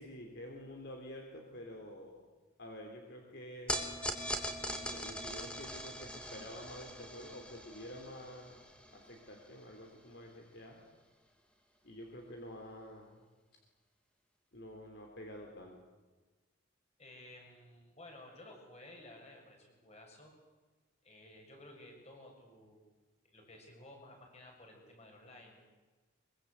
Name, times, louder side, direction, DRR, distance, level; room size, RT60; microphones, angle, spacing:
voice 1, 0.0-2.3 2.6-3.9 4.8-8.6 8.9-10.8 11.8-13.2 14.5-15.8, left 1 dB, 55° left, 2 dB, 3.5 m, -49 dB
sound 1, 3.7-10.1, equal, 5° left, 2.7 m, -42 dB
voice 2, 17.0-20.3 21.0-22.8 23.2-25.6, left 1 dB, 30° left, 2 dB, 6.9 m, -55 dB
24.0 x 24.0 x 8.3 m, 1.3 s
head